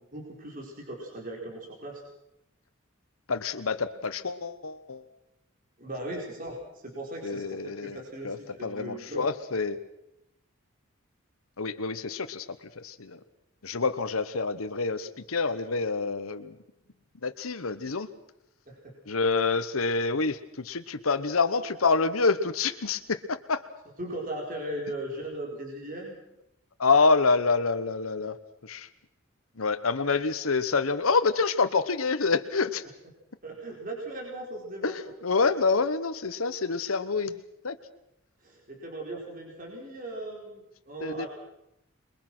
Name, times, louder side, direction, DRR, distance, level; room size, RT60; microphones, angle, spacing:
voice 1, 0.0-2.0 5.8-9.3 18.7-18.9 24.0-26.1 33.4-35.0 38.4-41.3, right 1 dB, 40° right, -1 dB, 4.5 m, -38 dB
voice 2, 3.3-5.0 7.2-8.0 8.2-8.4 8.6-9.8 11.6-12.4 12.8-13.2 13.6-16.5 17.2-18.1 19.1-23.6 26.8-28.3 28.6-28.9 29.6-32.8 34.8-37.4 37.6-37.8 41.0-41.3, left 4 dB, 85° left, 9 dB, 1.1 m, -27 dB
28.0 x 22.0 x 6.1 m, 0.84 s
head